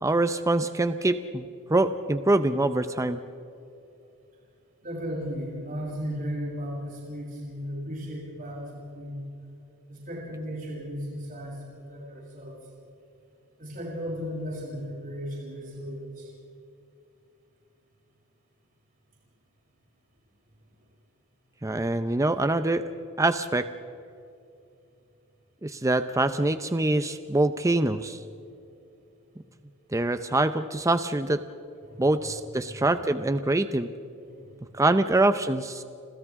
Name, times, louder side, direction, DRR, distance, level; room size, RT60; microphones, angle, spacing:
voice 1, 0.0-3.2 21.6-22.9 23.2-23.7 25.6-28.2 29.9-31.4 32.0-33.9 34.7-35.8, right 2 dB, 15° right, 10 dB, 0.6 m, -24 dB
voice 2, 4.8-9.3 9.9-12.5 13.6-16.3 31.9-32.1 32.6-33.1 34.3-34.6, equal, 40° right, -5 dB, 7.4 m, -36 dB
29.5 x 27.5 x 3.7 m, 2.7 s
head